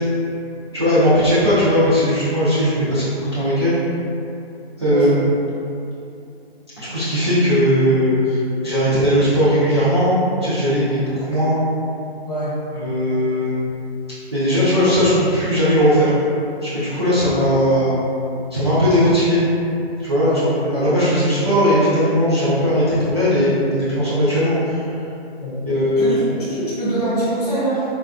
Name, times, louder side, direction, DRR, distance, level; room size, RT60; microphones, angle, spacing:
voice 1, 0.7-3.7 4.8-5.3 6.8-11.6 12.7-13.5 14.3-16.1 16.6-17.9 18.5-19.4 20.0-24.9 25.7-26.2, equal, 25° right, -13 dB, 0.4 m, -18 dB
voice 2, 4.9-5.2 12.3-12.6 20.2-20.4 25.4-25.6 26.0-27.8, right 1 dB, 40° left, -8 dB, 0.9 m, -24 dB
3.4 x 2.2 x 2.4 m, 2.6 s
figure-of-eight pair, 150°, 32 cm